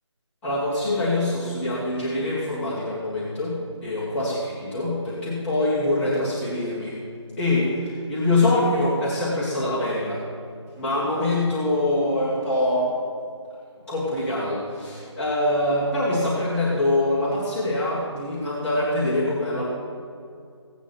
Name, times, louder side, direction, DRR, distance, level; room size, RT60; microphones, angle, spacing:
voice 1, 0.4-7.0 7.4-10.2 10.8-12.9 13.9-19.7, left 1 dB, 5° left, -10 dB, 1.9 m, -24 dB
16.5 x 9.1 x 4.4 m, 2.4 s
figure-of-eight pair, 155°, 15 cm